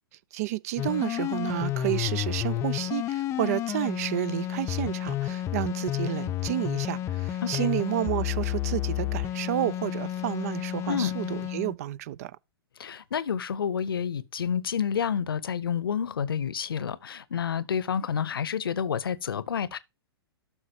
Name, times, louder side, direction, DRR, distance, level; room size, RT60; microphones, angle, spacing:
voice 1, 0.3-12.3, right 15 dB, 40° right, 0.4 m, -30 dB
sound 1, 0.8-11.8, left 12 dB, 20° left, 0.6 m, -31 dB
voice 2, 12.8-19.8, left 7 dB, 60° left, 0.8 m, -29 dB
12.0 x 6.2 x 2.8 m
figure-of-eight pair, 110°, 13 cm